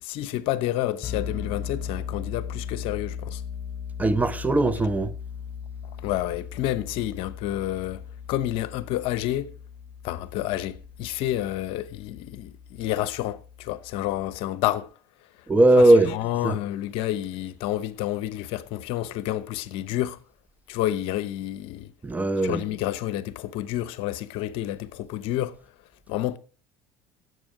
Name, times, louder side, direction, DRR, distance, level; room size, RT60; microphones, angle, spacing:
voice 1, 0.0-3.4 6.0-8.0 8.3-9.5 10.0-14.9 15.8-20.2 20.7-21.9 22.4-25.6 26.1-26.4, left 13 dB, 70° left, 0.9 m, -29 dB
sound 1, 1.0-14.5, left 7 dB, 35° left, 3.7 m, -38 dB
voice 2, 4.0-5.1 15.5-16.1 16.4-16.6 22.0-22.6, right 1 dB, 15° right, 1.2 m, -19 dB
16.0 x 8.1 x 4.9 m
supercardioid pair, 90°, 10 cm